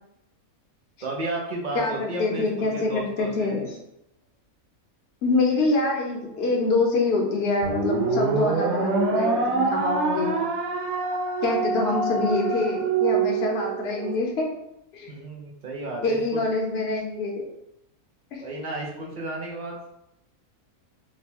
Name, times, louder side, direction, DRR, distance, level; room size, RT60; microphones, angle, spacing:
voice 1, 1.0-3.7 15.1-16.4 18.4-19.9, right 2 dB, 55° right, -2 dB, 0.5 m, -33 dB
voice 2, 1.7-3.7 5.2-10.4 11.4-14.5 14.9-15.1 16.0-17.4 18.3-18.4, left 3 dB, 50° left, 0 dB, 0.9 m, -25 dB
sound 1, 7.6-14.2, right 4 dB, 75° right, 1.0 m, -25 dB
3.1 x 2.1 x 4.2 m, 0.83 s
omnidirectional pair, 1.5 m